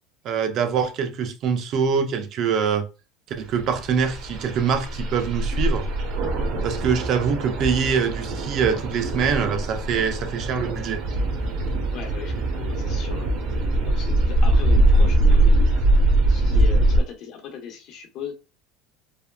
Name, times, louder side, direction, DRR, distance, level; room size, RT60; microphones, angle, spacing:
voice 1, 0.2-2.9 3.4-5.9 6.6-11.0, right 6 dB, 50° right, 0.5 m, -24 dB
sound 1, 3.6-17.0, right 1 dB, 70° right, 0.9 m, -22 dB
voice 2, 11.9-15.8 16.3-18.4, left 7 dB, 60° left, 0.9 m, -38 dB
3.5 x 2.3 x 2.2 m
supercardioid pair, 130°, 0 cm